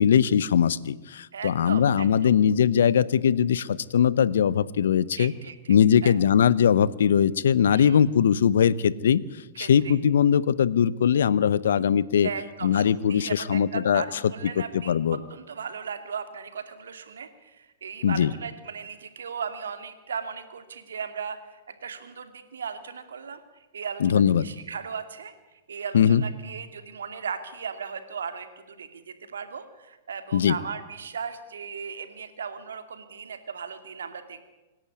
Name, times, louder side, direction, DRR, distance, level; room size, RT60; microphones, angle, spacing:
voice 1, 0.0-5.3 5.7-9.2 9.6-12.3 12.6-14.0 14.9-15.2 18.0-18.3 24.0-24.5 25.9-26.2 30.3-30.6, left 8 dB, 70° left, 20 dB, 0.8 m, -21 dB
voice 2, 1.3-2.3 5.1-5.5 6.0-6.1 7.7-8.0 9.5-10.0 11.7-11.8 12.2-15.0 15.3-21.5 21.8-25.3 25.7-34.4, right 6 dB, 75° right, 9 dB, 2.4 m, -37 dB
26.0 x 11.0 x 9.7 m, 1.1 s
hypercardioid pair, 105°, 0 cm